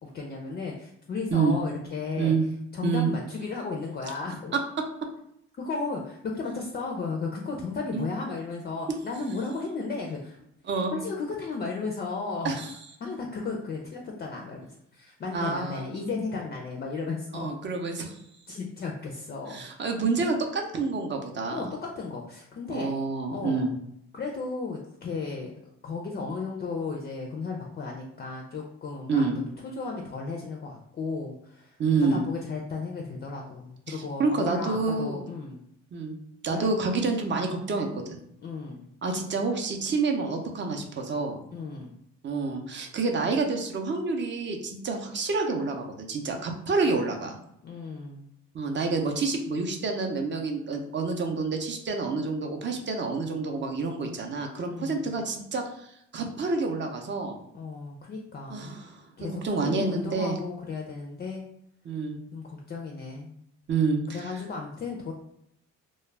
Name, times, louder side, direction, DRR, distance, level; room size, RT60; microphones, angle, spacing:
voice 1, 0.0-2.3 2.7-4.6 5.6-10.4 10.9-12.5 13.0-14.7 14.9-17.5 18.5-19.6 21.5-23.0 23.3-23.7 24.1-25.5 25.8-29.3 29.6-31.7 32.0-35.6 36.5-36.7 38.4-38.9 41.5-41.9 47.6-48.2 54.7-55.1 57.5-58.8 59.2-61.5 62.3-63.3 64.1-65.1, left 4 dB, 35° left, 0 dB, 0.4 m, -34 dB
voice 2, 15.3-15.9 17.3-18.1 19.5-21.7 22.7-23.7 29.1-29.4 31.8-32.2 33.9-35.2 35.9-36.2 36.4-38.2 39.0-41.4 42.2-47.4 48.5-57.4 58.5-59.0 59.4-60.4 61.8-62.2 63.7-64.4, right 4 dB, 40° right, 3 dB, 0.5 m, -28 dB
2.2 x 2.1 x 3.2 m, 0.75 s
cardioid pair, 90°, 30 cm